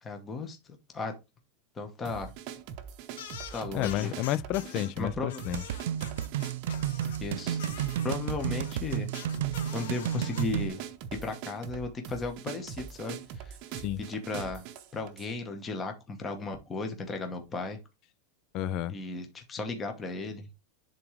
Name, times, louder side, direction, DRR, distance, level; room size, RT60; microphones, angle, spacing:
voice 1, 0.0-1.1 1.8-2.3 3.5-4.1 5.0-5.4 7.2-7.6 8.0-9.1 9.7-10.8 11.1-13.6 14.0-17.8 18.9-20.5, left 3 dB, 15° left, 0.9 m, -35 dB
sound 1, 2.0-15.3, right 8 dB, 40° right, 0.8 m, -42 dB
sound 2, 3.1-4.9 5.3-7.2 7.6-10.4, left 8 dB, 75° left, 1.4 m, -45 dB
voice 2, 3.7-5.6 8.4-8.5 13.7-14.0 18.5-19.0, left 13 dB, 35° left, 0.3 m, -31 dB
sound 3, 5.5-10.7, right 10 dB, 70° right, 0.4 m, -32 dB
10.5 x 3.7 x 3.1 m
supercardioid pair, 175°, 0 cm